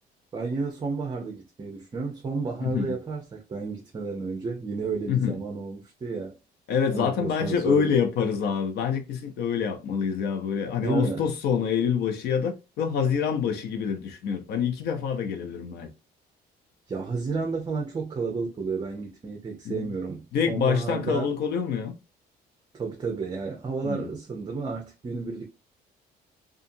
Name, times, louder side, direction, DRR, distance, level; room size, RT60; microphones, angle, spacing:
voice 1, 0.3-6.3 6.9-7.9 10.8-11.3 16.9-21.3 22.7-25.4, right 4 dB, 25° right, 0.6 m, -31 dB
voice 2, 2.6-3.0 5.1-5.4 6.7-15.9 19.6-19.9 20.3-21.9 23.8-24.1, left 7 dB, 75° left, 0.7 m, -26 dB
2.6 x 2.5 x 2.6 m
cardioid pair, 110°, 17 cm